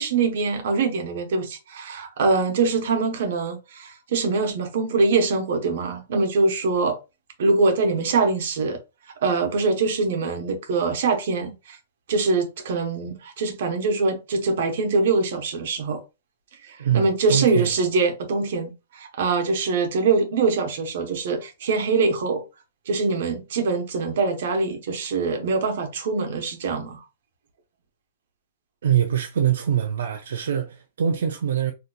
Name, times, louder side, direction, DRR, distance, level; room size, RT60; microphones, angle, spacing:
voice 1, 0.0-7.0 7.4-8.8 9.2-11.8 12.1-16.0 16.6-22.4 22.9-27.0, right 4 dB, 50° right, 0.8 m, -23 dB
voice 2, 16.8-17.7 28.8-31.7, right 9 dB, 75° right, 0.4 m, -23 dB
3.8 x 2.7 x 2.2 m
hypercardioid pair, 180°, 0 cm